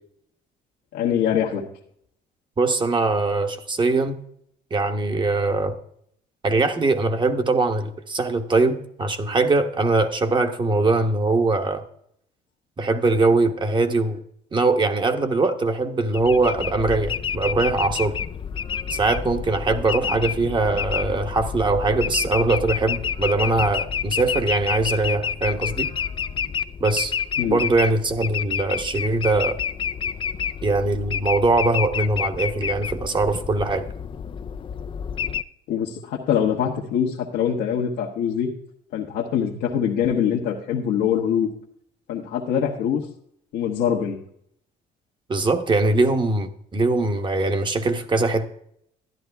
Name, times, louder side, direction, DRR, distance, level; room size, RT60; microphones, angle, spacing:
voice 1, 0.9-1.6 27.4-27.6 35.7-38.5 38.9-41.5 42.1-43.0 43.5-44.2, left 8 dB, 80° left, -3 dB, 1.3 m, -23 dB
voice 2, 2.6-4.2 4.7-5.8 6.4-11.8 12.8-14.2 14.5-18.2 18.9-25.9 26.8-27.1 27.5-29.6 30.6-33.9 45.3-48.5, right 3 dB, 30° right, 6 dB, 1.1 m, -22 dB
sound 1, 16.1-35.4, left 7 dB, 30° left, 0.4 m, -29 dB
12.0 x 10.5 x 3.5 m, 0.69 s
cardioid pair, 110°, 17 cm